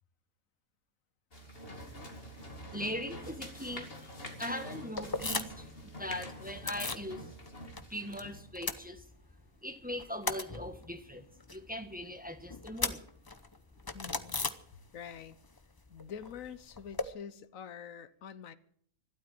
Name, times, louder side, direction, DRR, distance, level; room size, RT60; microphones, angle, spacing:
sound 1, 1.3-8.4, equal, 45° left, 2.7 m, -46 dB
voice 1, 2.7-5.7 6.0-7.3 7.9-9.1 9.6-13.0, left 1 dB, 5° right, 1.4 m, -40 dB
sound 2, 5.0-5.7 6.0-7.1 7.4-8.2 8.5-9.5 9.8-15.2 15.4-17.1, left 3 dB, 20° left, 0.7 m, -38 dB
voice 2, 13.9-14.4 14.9-15.4 15.9-18.6, left 7 dB, 90° left, 1.3 m, -46 dB
12.5 x 12.0 x 9.3 m
omnidirectional pair, 1.4 m